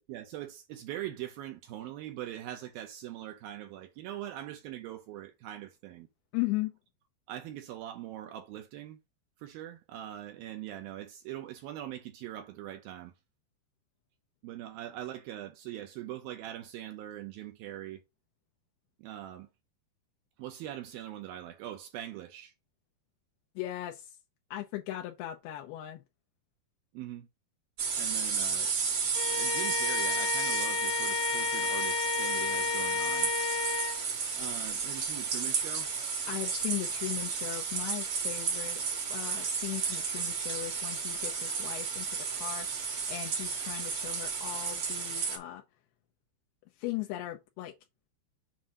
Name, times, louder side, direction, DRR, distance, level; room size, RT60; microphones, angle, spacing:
voice 1, 0.0-6.1 7.3-9.0 9.4-13.1 14.4-18.0 19.0-19.5 20.4-22.5 26.9-27.3 28.0-28.7 29.3-33.3 34.3-35.9, right 12 dB, 75° right, 2.3 m, -42 dB
voice 2, 6.3-6.8 23.6-24.1 24.5-26.0 36.3-38.8 39.1-45.6 46.8-47.7, left 16 dB, 85° left, 2.7 m, -38 dB
sound 1, 27.8-45.4, right 5 dB, 60° right, 1.4 m, -33 dB
Bowed string instrument, 29.1-34.0, left 7 dB, 70° left, 1.7 m, -32 dB
7.5 x 2.7 x 5.2 m
omnidirectional pair, 4.7 m